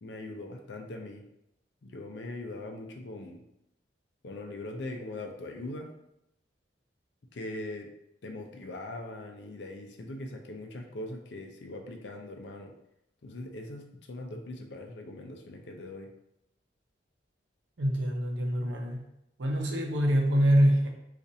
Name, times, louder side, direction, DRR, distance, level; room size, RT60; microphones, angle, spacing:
voice 1, 0.0-1.2 1.8-3.4 4.2-5.9 7.3-7.9 8.2-12.7 13.2-16.1, left 2 dB, 65° left, 3 dB, 0.5 m, -41 dB
voice 2, 17.8-19.0 19.4-20.9, equal, 70° right, 1 dB, 0.7 m, -25 dB
4.2 x 2.5 x 2.6 m, 0.82 s
head